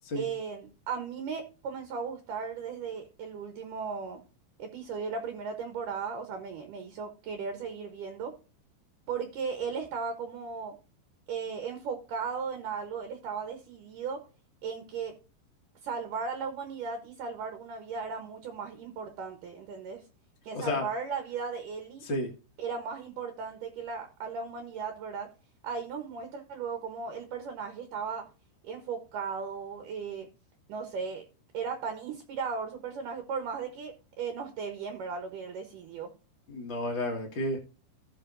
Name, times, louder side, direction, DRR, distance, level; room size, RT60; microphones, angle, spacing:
voice 1, 0.2-4.2 4.6-8.3 9.1-10.7 11.3-14.2 14.6-15.1 15.8-20.0 20.4-22.0 22.6-25.3 25.6-28.3 28.6-30.3 30.7-31.3 31.5-36.1, right 5 dB, 70° right, 6 dB, 2.1 m, -36 dB
voice 2, 20.5-20.8 22.0-22.3 36.5-37.6, left 1 dB, 55° left, 1 dB, 1.3 m, -31 dB
16.0 x 6.1 x 2.6 m, 0.33 s
omnidirectional pair, 5.1 m